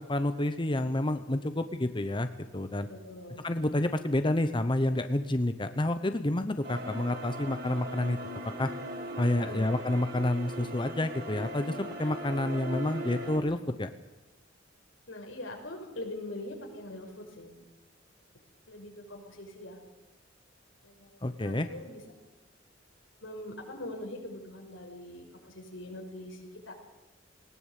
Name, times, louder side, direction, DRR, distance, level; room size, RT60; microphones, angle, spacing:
voice 1, 0.0-2.9 3.4-8.2 8.6-8.7 9.2-13.9 21.2-21.7, left 1 dB, 25° left, 9 dB, 0.9 m, -29 dB
voice 2, 2.9-3.4 9.4-9.7 15.1-17.6 18.7-19.8 20.8-22.0 23.2-26.7, left 1 dB, 90° left, 2 dB, 5.9 m, -43 dB
sound 1, 6.6-13.4, right 1 dB, 60° right, 4.4 m, -39 dB
19.5 x 19.0 x 8.3 m, 1.1 s
head